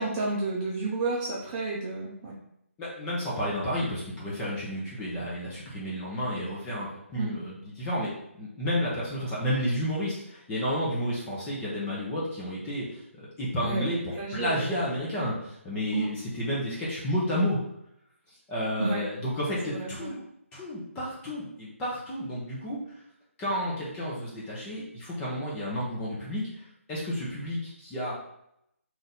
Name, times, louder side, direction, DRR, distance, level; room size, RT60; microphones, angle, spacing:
voice 1, 0.0-2.3 7.2-7.3 13.6-14.7 15.9-16.1 18.8-19.0 19.6-20.1, right 3 dB, 20° right, -7 dB, 1.0 m, -31 dB
voice 2, 2.8-8.1 8.4-14.0 14.3-17.6 18.5-20.2 20.5-22.8 23.4-26.6 26.9-28.1, equal, 15° left, -7 dB, 1.3 m, -31 dB
4.0 x 3.1 x 4.0 m, 0.77 s
figure-of-eight pair, 155°, 8 cm